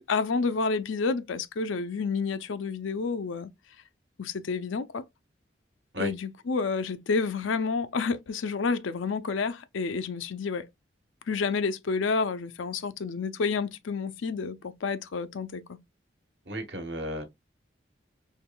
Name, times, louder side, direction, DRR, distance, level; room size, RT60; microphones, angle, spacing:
voice 1, 0.0-3.5 4.2-5.0 6.0-10.7 11.3-15.8, left 4 dB, 90° left, 0.5 m, -29 dB
voice 2, 16.5-17.2, equal, 65° right, 1.2 m, -33 dB
4.5 x 3.3 x 2.2 m
head